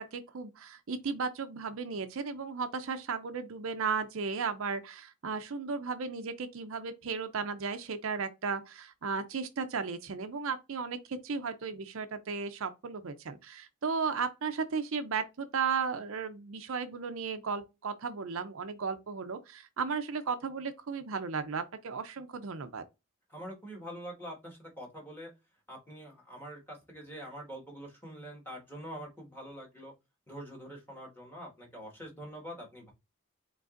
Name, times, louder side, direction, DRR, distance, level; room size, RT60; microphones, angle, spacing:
voice 1, 0.0-22.8, right 5 dB, 65° right, 0.5 m, -35 dB
voice 2, 23.3-25.3 25.7-29.9 30.3-32.9, equal, 10° left, 1.6 m, -45 dB
5.0 x 3.9 x 2.5 m
head